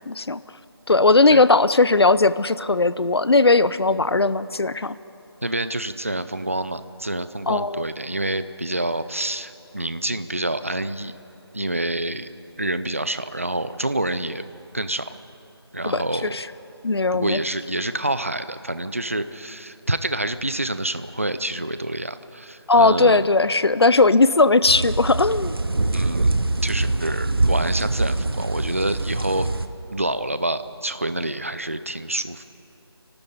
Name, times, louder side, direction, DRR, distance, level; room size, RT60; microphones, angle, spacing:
voice 1, 0.1-0.4 0.9-5.0 7.5-7.9 15.9-16.5 16.8-17.4 22.7-25.5, left 3 dB, 70° left, 16 dB, 0.7 m, -18 dB
voice 2, 5.4-11.1 11.5-12.3 12.6-14.4 14.7-15.1 15.7-16.4 17.1-23.2 25.9-26.3 26.6-29.5 29.9-32.4, right 1 dB, 30° right, 12 dB, 0.5 m, -27 dB
sound 1, 24.6-29.7, right 2 dB, 60° right, 1.1 m, -24 dB
26.5 x 12.5 x 8.4 m, 3.0 s
figure-of-eight pair, 180°, 14 cm